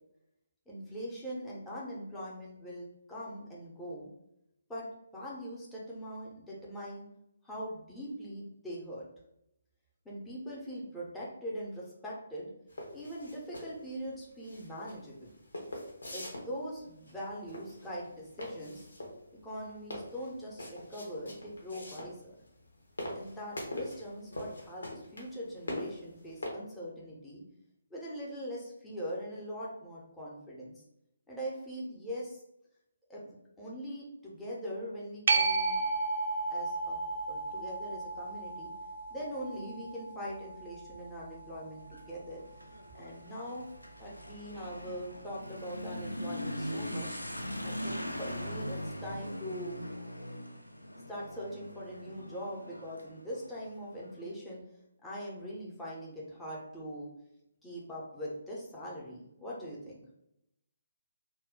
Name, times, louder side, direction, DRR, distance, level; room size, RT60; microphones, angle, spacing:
voice 1, 0.7-4.1 4.7-4.9 5.1-7.0 7.4-9.0 10.0-12.5 12.9-15.3 16.1-18.9 19.4-22.2 23.1-24.9 25.1-27.4 27.9-30.7 31.3-32.4 33.1-35.8 36.5-38.7 39.1-42.4 42.9-43.7 44.0-47.1 47.6-49.8 51.1-54.6 55.0-57.1 57.6-60.0, equal, 5° left, -6 dB, 0.6 m, -42 dB
sound 1, 12.7-26.5, left 1 dB, 65° left, 0.7 m, -43 dB
sound 2, 35.3-42.4 48.0-48.1, right 3 dB, 45° right, 0.3 m, -34 dB
Motorcycle / Accelerating revving vroom, 41.8-54.1, equal, 85° left, 0.4 m, -41 dB
2.2 x 2.1 x 3.6 m, 0.81 s
figure-of-eight pair, 140°, 0 cm